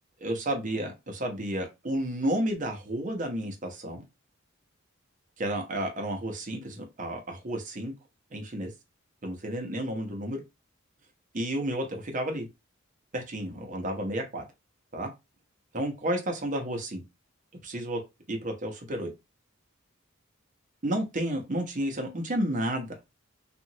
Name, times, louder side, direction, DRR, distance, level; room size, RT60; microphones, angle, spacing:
voice 1, 0.2-4.0 5.4-7.9 8.3-8.7 9.2-10.4 11.3-12.5 13.1-14.4 14.9-15.1 15.7-17.0 17.6-18.0 18.3-19.1 20.8-23.0, right 1 dB, 40° right, 0.8 m, -31 dB
2.9 x 2.4 x 2.7 m
head